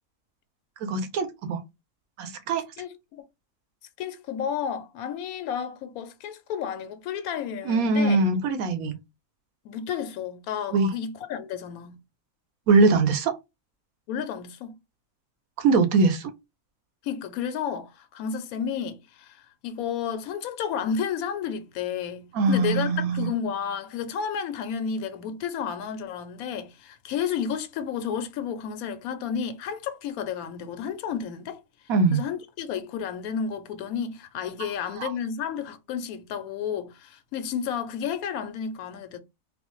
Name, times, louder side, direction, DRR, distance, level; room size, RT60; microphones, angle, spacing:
voice 1, 0.8-1.6 2.2-2.6 7.6-8.9 10.7-10.9 12.7-13.3 15.6-16.3 22.3-23.3 31.9-32.2 35.0-35.1, right 3 dB, 85° right, 1.1 m, -22 dB
voice 2, 2.8-3.2 4.0-8.2 9.6-12.0 14.1-14.7 17.0-31.6 32.1-39.2, left 7 dB, 85° left, 1.0 m, -32 dB
4.0 x 2.0 x 2.9 m
omnidirectional pair, 1.5 m